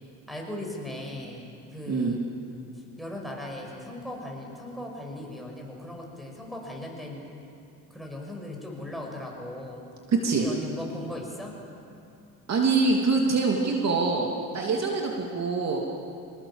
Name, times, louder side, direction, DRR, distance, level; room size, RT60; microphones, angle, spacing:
voice 1, 0.3-2.2 3.0-7.3 7.9-9.9 10.4-11.6, left 1 dB, ahead, 0 dB, 6.2 m, -38 dB
voice 2, 10.1-10.5 12.5-15.8, right 4 dB, 45° right, 0 dB, 2.8 m, -24 dB
25.5 x 20.0 x 7.2 m, 2.6 s
cardioid pair, 100°, 37 cm